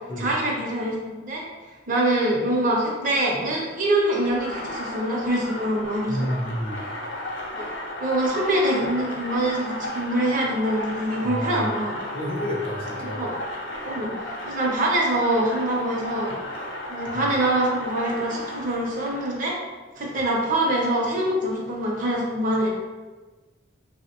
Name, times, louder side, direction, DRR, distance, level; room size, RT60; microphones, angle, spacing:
voice 1, 0.2-1.4 1.9-6.3 7.6-7.7 8.0-11.9 13.0-13.3 13.8-16.3 16.9-19.5 20.0-22.7, right 1 dB, 45° right, -2 dB, 0.6 m, -24 dB
sound 1, 4.2-19.4, left 1 dB, 70° left, 0.7 m, -34 dB
voice 2, 6.1-6.8 11.2-11.7 12.1-13.3 17.1-17.3, equal, 30° left, -3 dB, 0.5 m, -29 dB
3.3 x 2.0 x 2.8 m, 1.3 s
head